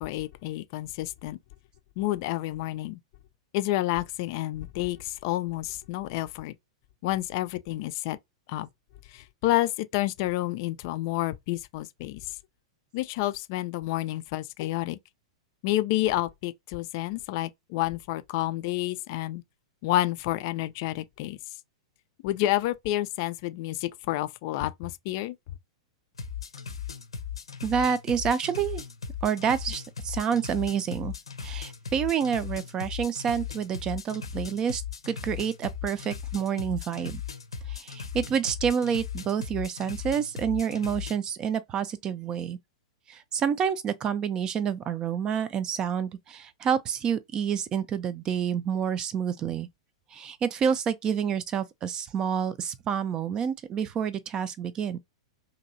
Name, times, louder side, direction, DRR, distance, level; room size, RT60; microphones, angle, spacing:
voice 1, 0.0-1.4 2.0-3.0 3.5-6.5 7.0-8.2 8.5-8.7 9.1-12.4 12.9-15.0 15.6-19.4 19.8-21.4 22.2-25.3, left 15 dB, 45° left, 0.3 m, -29 dB
sound 1, 26.1-41.2, left 7 dB, 80° left, 0.7 m, -37 dB
voice 2, 27.6-28.8 29.2-37.2 37.7-42.6 43.1-49.7 50.1-55.0, right 7 dB, 25° right, 0.4 m, -28 dB
2.9 x 2.7 x 2.6 m
figure-of-eight pair, 100°, 3 cm